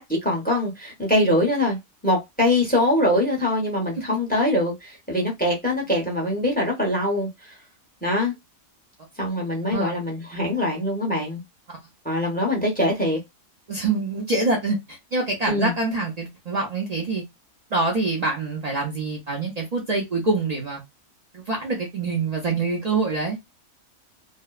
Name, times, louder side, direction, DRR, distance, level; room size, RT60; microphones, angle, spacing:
voice 1, 0.0-1.8 2.0-7.6 8.0-8.3 9.2-11.4 12.0-13.2 15.5-15.7, left 1 dB, 10° left, 0.6 m, -23 dB
voice 2, 13.7-17.2 17.7-20.8 21.3-23.4, right 3 dB, 85° right, 0.3 m, -25 dB
2.6 x 2.1 x 2.3 m
omnidirectional pair, 1.6 m